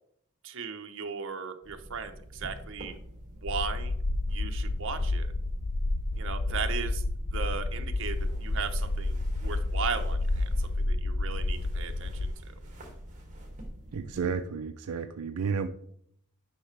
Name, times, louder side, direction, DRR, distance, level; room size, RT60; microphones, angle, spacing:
voice 1, 0.4-3.0 3.3-3.9 4.3-5.3 6.2-7.0 7.3-12.3, right 5 dB, 55° right, 6 dB, 0.8 m, -37 dB
sound 1, 1.6-14.2, equal, 35° right, 1.9 m, -47 dB
sound 2, 3.5-12.3, left 2 dB, 40° left, 0.4 m, -30 dB
voice 2, 13.9-15.7, right 5 dB, 80° right, 8 dB, 0.4 m, -32 dB
9.9 x 5.7 x 3.3 m, 0.68 s
head